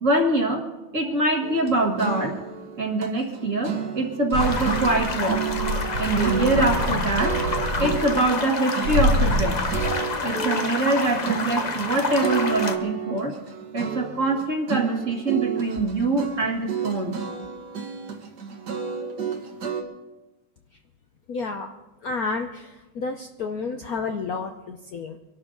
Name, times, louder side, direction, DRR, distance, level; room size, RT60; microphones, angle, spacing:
voice 1, 0.0-0.6 0.9-2.4 2.8-5.5 6.0-9.6 10.2-13.3 13.7-17.2, right 2 dB, 40° right, 2 dB, 1.9 m, -24 dB
sound 1, 1.4-4.4 4.6-6.9 7.2-19.8, right 7 dB, 55° right, 1.9 m, -32 dB
sound 2, 4.3-8.3 8.8-9.9, equal, 75° right, 4.6 m, -26 dB
sound 3, 4.4-12.8, left 3 dB, 45° left, 0.5 m, -29 dB
voice 2, 21.3-21.7 22.0-25.2, left 4 dB, 60° left, 4 dB, 1.0 m, -30 dB
24.5 x 12.0 x 3.8 m, 1.1 s
omnidirectional pair, 2.3 m